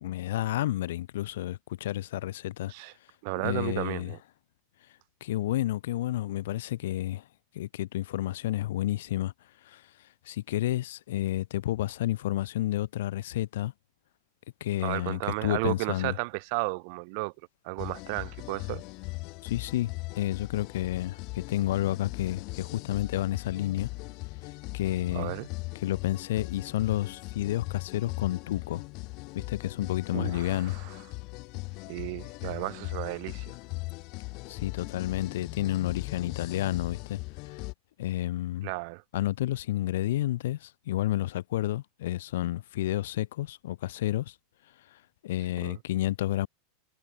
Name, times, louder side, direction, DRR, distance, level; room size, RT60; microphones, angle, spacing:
voice 1, 0.0-2.7 3.4-4.1 5.2-7.2 7.5-9.3 9.6-9.8 10.3-13.7 14.6-16.2 19.4-23.9 24.7-25.3 25.8-28.8 29.3-30.8 34.5-37.2 37.5-37.6 38.0-38.7 39.1-44.3 44.9-46.5, left 14 dB, 80° left, 0.4 m, -30 dB
voice 2, 3.2-4.2 14.8-17.3 17.6-18.8 25.1-25.5 30.1-30.9 31.9-33.5 38.6-39.0 45.6-45.8, right 32 dB, 55° right, 0.4 m, -33 dB
sound 1, 17.8-37.7, left 26 dB, 45° left, 1.8 m, -39 dB
supercardioid pair, 150°, 0 cm